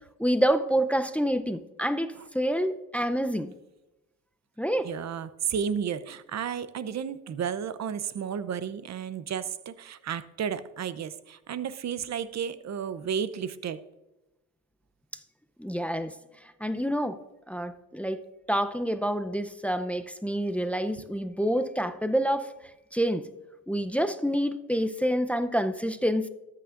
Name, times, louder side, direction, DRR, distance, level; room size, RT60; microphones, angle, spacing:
voice 1, 0.2-3.5 4.6-4.9 15.6-16.1 16.4-17.2 17.5-18.2 18.5-22.5 22.9-23.3 23.7-26.3, equal, 5° left, 9 dB, 0.5 m, -27 dB
voice 2, 4.8-13.8 21.0-21.1, right 7 dB, 55° right, 14 dB, 0.7 m, -32 dB
13.5 x 8.5 x 2.5 m, 0.99 s
cardioid pair, 95°, 33 cm